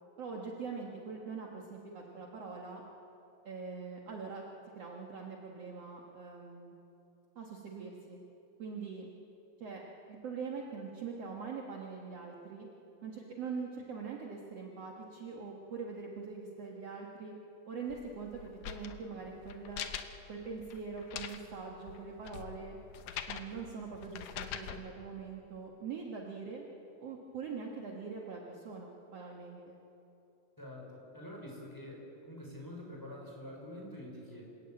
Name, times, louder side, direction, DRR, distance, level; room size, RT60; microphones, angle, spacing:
voice 1, 0.2-2.8 3.5-4.4 4.8-6.7 7.4-8.2 8.6-9.1 9.6-9.8 10.1-12.7 13.0-17.3 17.7-19.9 20.3-22.8 23.3-26.6 27.0-29.8, right 5 dB, 55° right, -1 dB, 2.5 m, -43 dB
sound 1, 17.9-24.8, left 9 dB, 70° left, 2.2 m, -44 dB
voice 2, 30.6-34.4, left 1 dB, 5° left, -2 dB, 5.1 m, -46 dB
28.0 x 15.0 x 9.0 m, 2.9 s
omnidirectional pair, 3.8 m